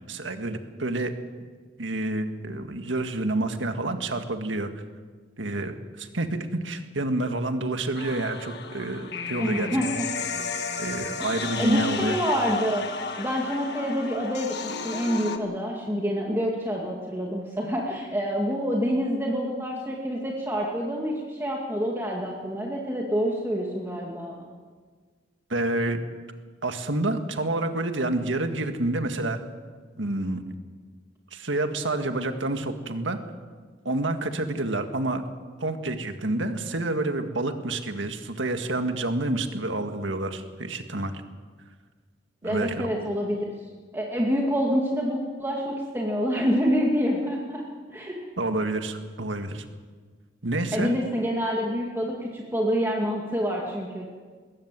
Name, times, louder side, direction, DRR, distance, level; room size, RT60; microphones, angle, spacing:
voice 1, 0.1-1.1 1.8-4.7 5.4-9.7 10.8-12.2 25.5-26.0 26.6-29.4 30.0-30.4 31.3-33.2 33.9-35.2 35.6-41.1 42.4-42.9 48.4-49.6 50.4-51.0, right 2 dB, 90° right, 6 dB, 1.9 m, -28 dB
sound 1, 7.9-15.4, left 5 dB, 60° left, 1.7 m, -33 dB
voice 2, 9.4-9.9 11.2-12.8 13.2-24.3 42.4-47.6 47.9-48.2 50.7-54.0, equal, 15° right, -2 dB, 2.2 m, -27 dB
22.0 x 17.5 x 7.6 m, 1.5 s
head